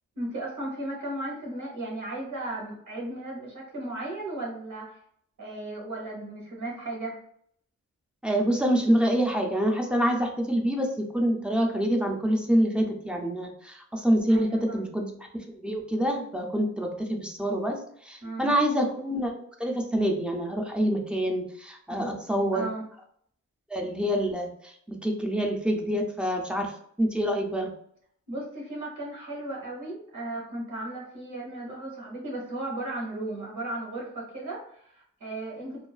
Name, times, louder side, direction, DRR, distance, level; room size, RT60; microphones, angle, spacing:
voice 1, 0.2-5.0 5.4-7.2 14.3-14.8 18.2-18.5 21.9-22.1 22.5-22.8 28.3-35.9, right 2 dB, 90° right, -4 dB, 0.9 m, -35 dB
voice 2, 8.2-15.1 15.5-17.8 18.0-19.3 19.6-22.7 23.7-27.7, equal, 5° right, 1 dB, 0.4 m, -26 dB
2.3 x 2.3 x 2.3 m, 0.66 s
wide cardioid pair, 130°, 30 cm